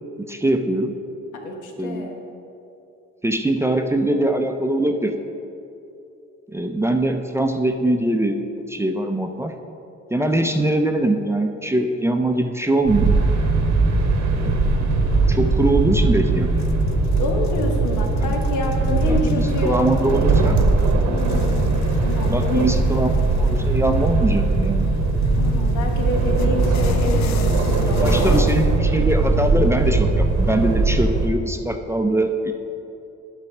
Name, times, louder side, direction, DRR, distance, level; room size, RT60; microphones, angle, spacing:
voice 1, 0.3-0.9 1.8-2.1 3.2-5.1 6.5-8.4 8.7-9.5 10.1-13.2 14.3-14.6 15.3-16.7 18.2-18.3 19.0-20.6 22.3-24.9 28.0-32.5, right 1 dB, 10° right, 5 dB, 0.5 m, -22 dB
voice 2, 1.4-2.2 10.1-10.6 17.2-19.9 21.1-22.7 25.4-28.5, left 2 dB, 85° left, 2 dB, 1.1 m, -28 dB
sound 1, 12.9-31.3, right 3 dB, 70° right, 1.0 m, -20 dB
sound 2, 16.6-28.7, left 7 dB, 65° left, 0.6 m, -34 dB
8.9 x 4.1 x 5.9 m, 2.7 s
cardioid pair, 90°, 30 cm